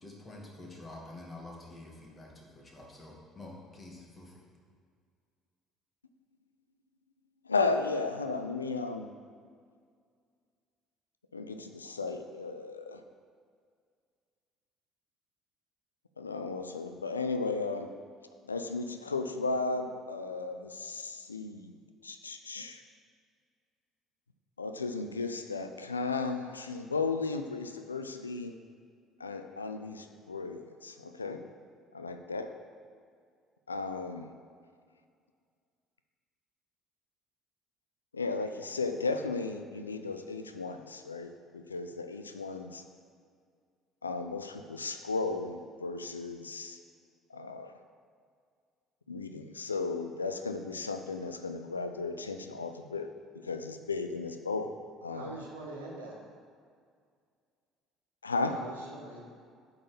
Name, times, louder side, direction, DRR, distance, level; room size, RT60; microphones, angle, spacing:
voice 1, 0.0-4.3, left 2 dB, 25° left, -2 dB, 2.1 m, -48 dB
voice 2, 7.4-9.1 11.3-13.0 16.2-17.9 18.4-21.8 22.0-22.8 24.6-28.5 29.2-31.4 31.9-32.5 33.7-34.3 38.1-42.8 44.0-46.8 47.3-47.7 49.1-53.1 53.3-54.7 55.0-55.4 58.2-58.6, left 3 dB, 85° left, 7 dB, 0.4 m, -35 dB
voice 3, 55.1-56.2 58.5-59.2, right 2 dB, 80° right, -4 dB, 1.7 m, -43 dB
8.4 x 4.0 x 7.0 m, 2.1 s
figure-of-eight pair, 55°, 0 cm